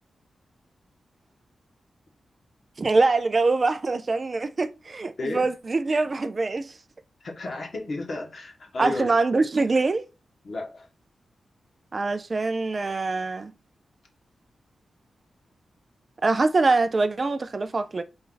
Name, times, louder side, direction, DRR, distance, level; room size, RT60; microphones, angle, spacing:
voice 1, 2.8-6.7 8.8-10.1 11.9-13.5 16.2-18.0, right 3 dB, 30° right, 0.3 m, -24 dB
voice 2, 7.2-9.1 10.4-10.9, left 2 dB, 50° left, 1.2 m, -32 dB
4.3 x 2.6 x 3.8 m
wide cardioid pair, 150°, 0 cm